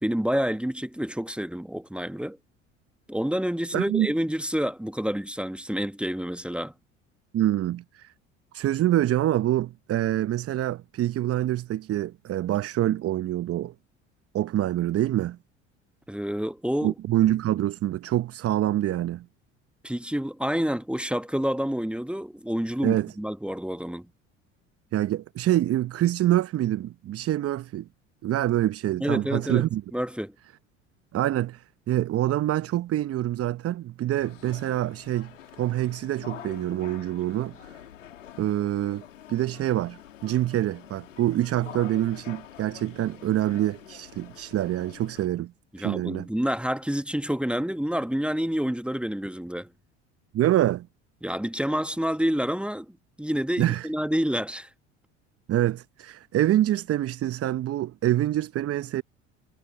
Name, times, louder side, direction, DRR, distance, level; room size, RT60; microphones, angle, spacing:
voice 1, 0.0-2.4 3.1-6.7 16.1-16.9 19.8-24.1 29.0-29.6 29.9-30.3 45.7-49.7 51.2-54.7, equal, 5° right, 1.2 m, -28 dB
voice 2, 3.7-4.1 7.3-8.1 8.5-13.7 14.3-15.4 16.8-19.2 22.8-23.1 24.9-27.9 28.2-29.8 31.1-35.3 35.6-37.8 38.4-39.0 39.3-45.5 45.8-46.3 50.3-50.9 53.6-53.9 55.5-59.0, right 13 dB, 40° right, 0.8 m, -26 dB
sound 1, 34.1-45.3, left 10 dB, 85° left, 2.5 m, -46 dB
hypercardioid pair, 65°, 37 cm